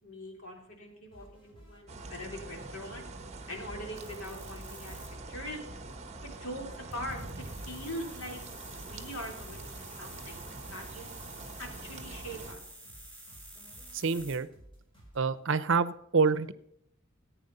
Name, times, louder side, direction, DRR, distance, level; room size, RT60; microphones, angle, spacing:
voice 1, 0.0-3.1 3.5-5.0 5.3-5.6 6.2-6.7 6.9-8.4 8.8-11.1 11.6-12.6, equal, 80° left, 1 dB, 3.5 m, -42 dB
sound 1, 1.1-15.2, right 1 dB, 25° left, 5.1 m, -55 dB
sound 2, 1.9-12.6, right 2 dB, 30° right, 1.1 m, -44 dB
sound 3, 4.0-5.1 6.9-14.4, right 1 dB, 5° left, 2.9 m, -50 dB
voice 2, 13.9-14.5 15.2-16.5, right 5 dB, 60° right, 15 dB, 0.7 m, -27 dB
14.5 x 9.1 x 5.5 m, 0.75 s
head